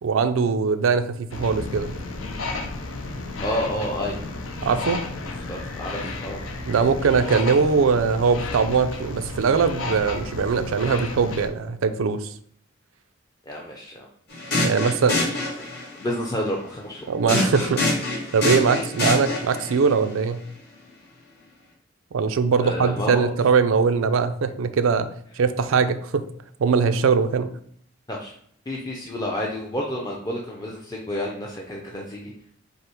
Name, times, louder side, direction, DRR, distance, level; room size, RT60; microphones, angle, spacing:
voice 1, 0.0-2.0 4.6-5.0 6.7-12.3 14.6-15.3 17.1-20.4 22.1-25.1 25.4-26.2 26.6-27.5, right 5 dB, 90° right, 11 dB, 0.4 m, -21 dB
sound 1, 1.3-11.5, left 3 dB, 85° left, 0.7 m, -33 dB
voice 2, 3.4-4.2 5.5-6.4 13.5-14.1 15.1-15.2 15.6-15.7 16.0-17.0 22.6-23.3 28.1-28.3 28.7-32.5, left 1 dB, 20° left, -2 dB, 0.5 m, -30 dB
sound 2, 14.3-16.0 17.3-19.7, left 2 dB, 55° left, 1.8 m, -25 dB
5.3 x 2.0 x 4.4 m, 0.63 s
head